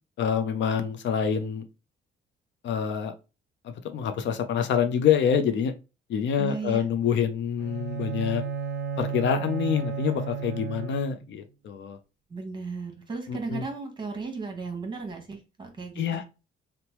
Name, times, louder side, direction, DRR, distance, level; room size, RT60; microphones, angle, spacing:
voice 1, 0.2-1.6 2.6-3.1 3.6-5.7 6.1-8.4 9.0-12.0 13.3-13.6 16.0-16.2, left 7 dB, 65° left, 8 dB, 0.5 m, -26 dB
voice 2, 6.4-6.9 12.3-16.2, right 4 dB, 25° right, 2 dB, 1.0 m, -35 dB
Bowed string instrument, 7.6-11.3, right 6 dB, 60° right, 0.5 m, -33 dB
2.9 x 2.1 x 2.9 m, 0.30 s
cardioid pair, 90°, 20 cm